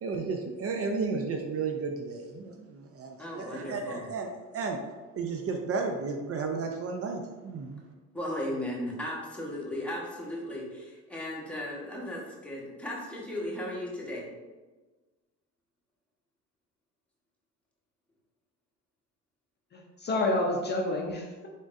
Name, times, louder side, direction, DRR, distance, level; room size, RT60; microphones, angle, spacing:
voice 1, 0.0-4.8 5.2-7.8, right 4 dB, 50° right, 3 dB, 0.5 m, -33 dB
voice 2, 3.2-4.1 8.1-14.2, left 1 dB, 5° left, -5 dB, 1.2 m, -36 dB
voice 3, 19.7-21.5, left 2 dB, 35° left, 0 dB, 0.5 m, -29 dB
3.8 x 3.6 x 2.5 m, 1.3 s
supercardioid pair, 85°, 31 cm